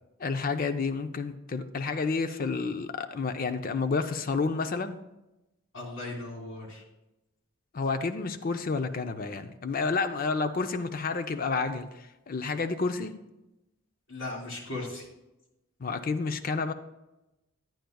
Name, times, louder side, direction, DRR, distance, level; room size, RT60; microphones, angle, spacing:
voice 1, 0.2-5.0 7.7-13.1 15.8-16.7, left 4 dB, 45° left, 9 dB, 0.5 m, -30 dB
voice 2, 5.7-6.8 14.1-15.1, left 2 dB, 70° left, -3 dB, 3.1 m, -37 dB
11.5 x 9.1 x 2.3 m, 0.95 s
head